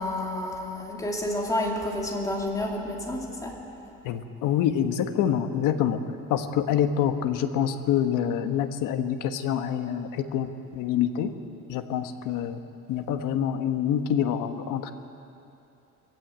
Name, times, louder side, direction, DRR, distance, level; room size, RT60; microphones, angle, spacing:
voice 1, 0.0-3.6, left 1 dB, 10° left, -1 dB, 2.7 m, -30 dB
voice 2, 4.0-6.0 6.3-11.3 11.7-12.6 12.9-14.9, left 9 dB, 75° left, 8 dB, 1.4 m, -26 dB
23.0 x 15.5 x 9.2 m, 2.9 s
cardioid pair, 175°, 32 cm